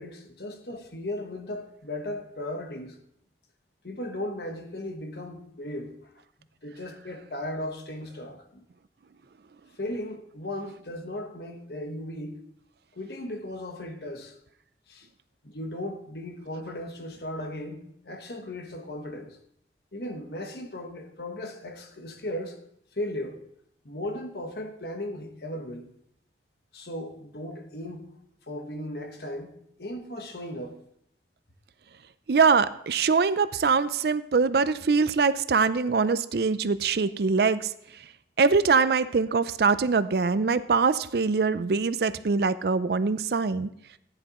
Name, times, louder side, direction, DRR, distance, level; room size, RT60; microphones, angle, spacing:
voice 1, 0.0-3.0 3.8-6.1 6.6-8.6 9.8-12.4 12.9-14.4 14.9-15.1 15.4-19.4 19.9-22.6 23.0-23.4 23.8-25.9 26.7-28.1 28.5-30.8, left 1 dB, 65° left, 1.2 m, -36 dB
voice 2, 32.3-37.7 38.4-43.7, right 5 dB, 65° right, 0.5 m, -23 dB
15.0 x 9.9 x 3.0 m
head